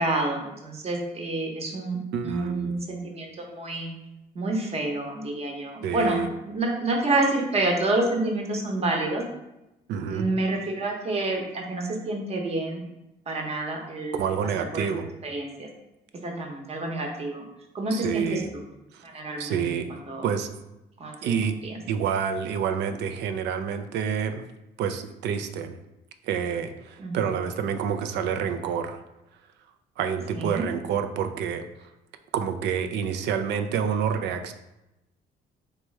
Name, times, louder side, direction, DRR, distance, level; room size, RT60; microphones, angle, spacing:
voice 1, 0.0-3.9 4.3-9.2 10.1-12.8 13.3-14.2 14.7-14.9 15.2-15.7 16.2-17.4 17.7-18.4 19.0-19.6 20.1-20.3 21.0-21.3 21.6-21.8 27.0-27.2 30.3-30.7, right 2 dB, 35° right, 1 dB, 0.9 m, -28 dB
voice 2, 2.1-2.8 5.8-6.3 9.9-10.3 14.1-15.1 17.9-18.5 18.9-19.0 19.4-19.9 20.2-20.5 21.2-21.6 21.9-24.5 24.8-25.8 26.2-29.0 30.0-31.9 32.3-34.5, right 7 dB, 75° right, 8 dB, 0.4 m, -28 dB
3.4 x 3.0 x 3.2 m, 0.92 s
cardioid pair, 95°, 18 cm